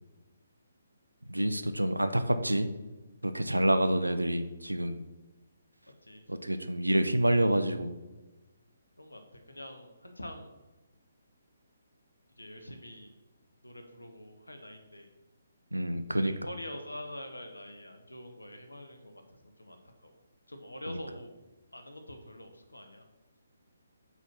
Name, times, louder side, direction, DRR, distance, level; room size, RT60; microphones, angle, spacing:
voice 1, 1.3-2.7 3.2-5.0 6.3-7.9 15.7-16.3 20.9-21.0, right 1 dB, 85° right, 9 dB, 0.5 m, -27 dB
voice 2, 9.0-10.5 12.4-13.1 13.6-15.1 16.2-19.2 19.6-20.2 20.5-21.3 21.7-23.1, left 1 dB, 80° left, 5 dB, 0.8 m, -45 dB
4.5 x 4.1 x 5.5 m, 1.1 s
figure-of-eight pair, 135°, 0 cm